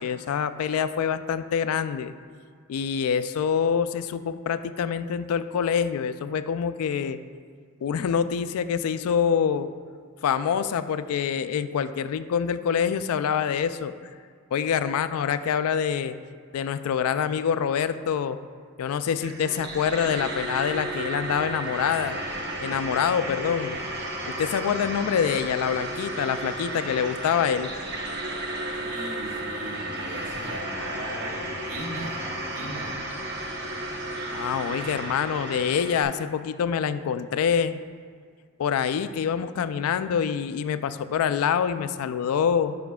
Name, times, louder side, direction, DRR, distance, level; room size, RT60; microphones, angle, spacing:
voice 1, 0.0-2.2 2.7-7.2 7.8-9.7 10.2-13.9 14.5-16.2 16.5-18.4 18.8-22.2 22.6-23.8 24.3-27.7 34.3-37.8 38.6-42.8, left 7 dB, 80° left, 13 dB, 0.3 m, -26 dB
sound 1, 19.1-36.0, right 1 dB, 50° right, 0.8 m, -33 dB
voice 2, 28.7-33.0, right 1 dB, 90° right, -3 dB, 1.5 m, -37 dB
12.0 x 5.0 x 2.3 m, 2.1 s
head